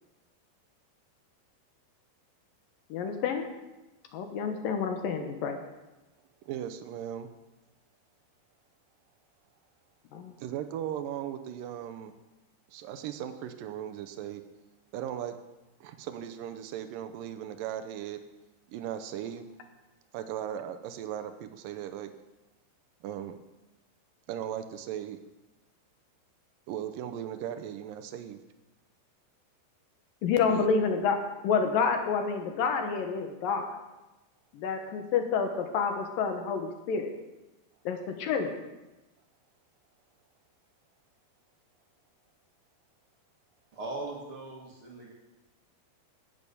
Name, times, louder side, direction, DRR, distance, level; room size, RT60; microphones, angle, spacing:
voice 1, 2.9-3.5 4.1-5.6 10.1-10.3 30.2-31.2 31.4-33.8 34.5-37.1 37.9-38.5, left 5 dB, 70° left, 5 dB, 2.5 m, -28 dB
voice 2, 6.4-7.3 10.4-12.1 12.7-14.4 14.9-15.4 15.8-18.2 18.7-19.5 20.1-22.1 23.0-23.4 24.3-25.2 26.7-28.4 30.5-30.7, right 10 dB, 80° right, 9 dB, 2.1 m, -37 dB
voice 3, 43.7-45.1, right 2 dB, 45° right, -2 dB, 1.9 m, -39 dB
17.0 x 7.1 x 6.9 m, 1.1 s
omnidirectional pair, 4.9 m